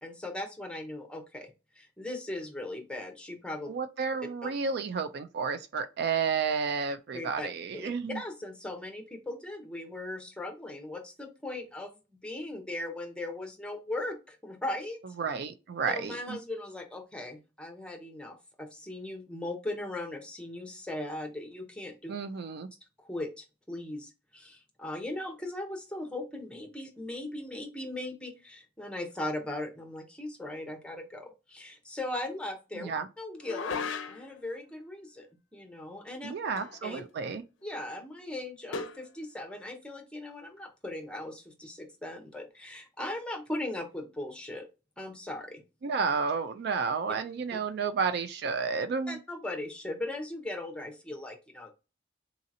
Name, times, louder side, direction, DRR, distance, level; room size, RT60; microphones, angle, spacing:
voice 1, 0.0-1.5 1.8-3.7 4.4-4.5 7.1-7.5 7.7-11.9 12.2-15.0 15.9-22.1 23.0-32.9 33.2-35.3 35.5-36.3 36.8-37.0 37.6-44.7 45.0-45.6 49.1-51.7, left 1 dB, 5° left, 0.7 m, -38 dB
voice 2, 3.7-8.2 15.2-16.4 22.1-22.7 32.7-33.1 36.2-37.4 45.8-49.2, right 5 dB, 60° right, 0.3 m, -31 dB
sound 1, 33.4-34.4 36.6-36.9 37.2-37.3 38.7-39.1, left 5 dB, 85° left, 0.5 m, -36 dB
3.9 x 2.8 x 2.6 m
head